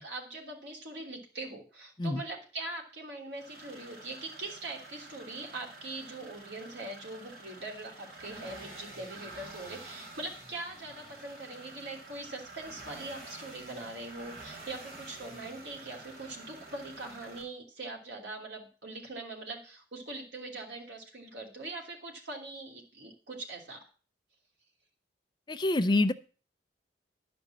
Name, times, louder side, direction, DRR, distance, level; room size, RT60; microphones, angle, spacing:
voice 1, 0.0-23.8, right 2 dB, 85° right, 1 dB, 3.0 m, -42 dB
sound 1, 3.3-17.4, right 2 dB, 55° right, 5.8 m, -49 dB
voice 2, 25.5-26.1, left 2 dB, 25° left, 9 dB, 0.5 m, -26 dB
11.5 x 5.2 x 7.2 m, 0.37 s
head